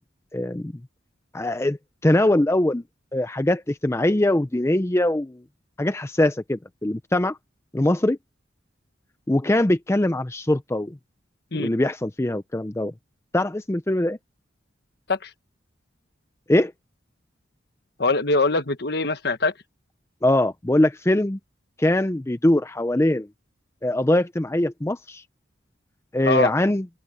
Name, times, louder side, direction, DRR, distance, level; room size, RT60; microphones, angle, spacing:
voice 1, 0.3-0.7 1.3-1.8 2.0-2.8 3.1-5.4 5.8-7.4 7.7-8.2 9.3-11.0 11.5-12.9 13.3-14.2 16.5-16.7 20.2-21.4 21.8-23.3 23.8-25.2 26.1-26.9, left 1 dB, 15° left, 0.5 m, -22 dB
voice 2, 18.0-19.5 26.3-26.5, left 3 dB, 55° left, 1.4 m, -22 dB
open air
head